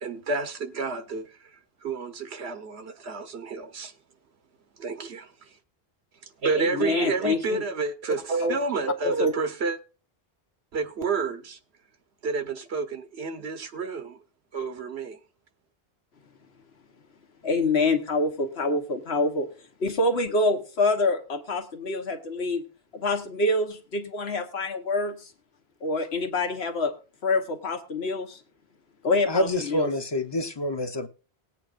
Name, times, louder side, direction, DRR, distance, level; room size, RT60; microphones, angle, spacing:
voice 1, 0.0-3.9 4.8-5.6 6.2-9.8 10.7-11.6 12.2-14.2 14.5-15.2, right 4 dB, 90° right, 1.3 m, -30 dB
voice 2, 6.6-7.6 8.4-8.6 9.0-9.3 17.4-19.5 19.8-22.6 22.9-25.3 25.8-26.9 27.2-28.4 29.0-29.9, left 2 dB, 85° left, 1.5 m, -26 dB
voice 3, 29.2-31.1, left 1 dB, 30° left, 0.7 m, -27 dB
19.5 x 8.3 x 2.5 m
omnidirectional pair, 1.0 m